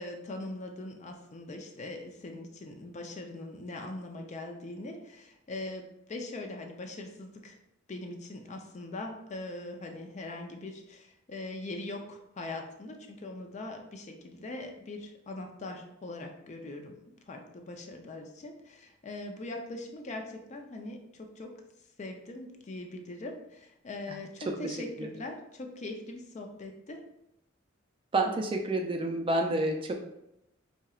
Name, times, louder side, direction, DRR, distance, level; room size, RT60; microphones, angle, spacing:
voice 1, 0.0-7.6 7.9-21.5 22.0-27.0, left 2 dB, 35° left, 3 dB, 0.5 m, -41 dB
voice 2, 24.5-25.1 28.1-29.9, right 2 dB, 25° right, 3 dB, 0.4 m, -29 dB
4.3 x 2.8 x 2.4 m, 0.82 s
head